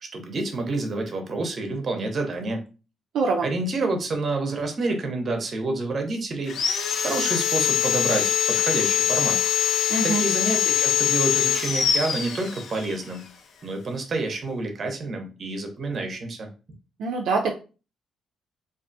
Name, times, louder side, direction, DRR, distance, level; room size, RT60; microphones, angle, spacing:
voice 1, 0.0-2.6 3.4-6.5 7.0-9.4 10.0-13.3 13.6-16.5, right 3 dB, 45° right, 4 dB, 0.7 m, -28 dB
voice 2, 3.1-3.5 9.9-10.2 17.0-17.5, right 4 dB, 80° right, 1 dB, 0.4 m, -24 dB
Sawing, 6.5-12.9, left 9 dB, 65° left, 0.4 m, -23 dB
2.4 x 2.3 x 2.5 m, 0.33 s
cardioid pair, 90°, 0 cm